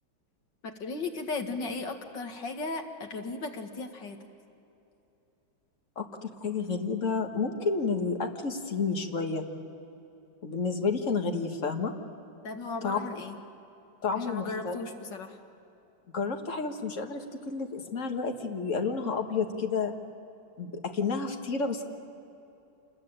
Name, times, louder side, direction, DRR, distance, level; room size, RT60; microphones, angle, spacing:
voice 1, 0.6-4.2 12.4-13.4 14.1-15.4, left 3 dB, 65° left, 4 dB, 2.5 m, -36 dB
voice 2, 6.0-9.5 10.4-11.9 12.8-13.0 14.0-14.8 16.1-19.9 20.6-21.8, left 4 dB, 40° left, 4 dB, 1.8 m, -30 dB
28.0 x 21.0 x 8.9 m, 2.9 s
omnidirectional pair, 2.1 m